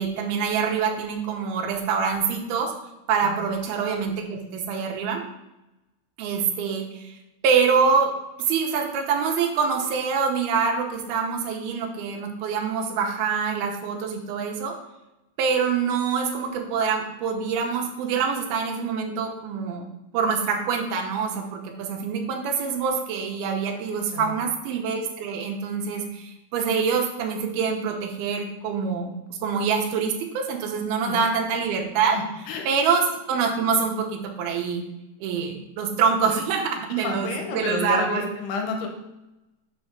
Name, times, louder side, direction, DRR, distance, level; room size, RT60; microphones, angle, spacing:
voice 1, 0.0-2.7 3.1-5.2 6.2-7.2 7.4-8.1 8.4-14.7 15.4-19.8 20.1-32.2 32.7-34.8 35.2-38.2, right 6 dB, 80° right, 2 dB, 2.7 m, -25 dB
voice 2, 23.9-24.4 31.0-31.3 32.1-32.6 36.9-38.9, left 4 dB, 90° left, 3 dB, 3.0 m, -31 dB
6.4 x 5.6 x 4.5 m, 0.95 s
omnidirectional pair, 4.6 m